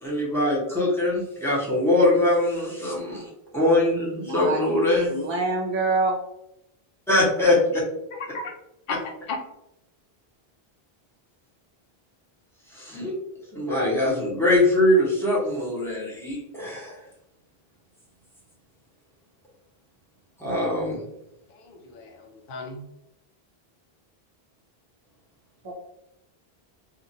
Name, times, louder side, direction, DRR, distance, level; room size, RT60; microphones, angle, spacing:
voice 1, 0.0-5.1 7.1-7.8 12.7-13.1 13.5-16.9 20.4-21.0, left 1 dB, 5° left, -7 dB, 1.0 m, -22 dB
voice 2, 4.2-6.2 25.6-25.7, right 3 dB, 35° right, 0 dB, 0.5 m, -26 dB
voice 3, 8.1-8.5 8.9-9.4 21.5-22.9, left 3 dB, 60° left, 1 dB, 0.8 m, -35 dB
2.6 x 2.5 x 2.7 m, 0.83 s
omnidirectional pair, 1.0 m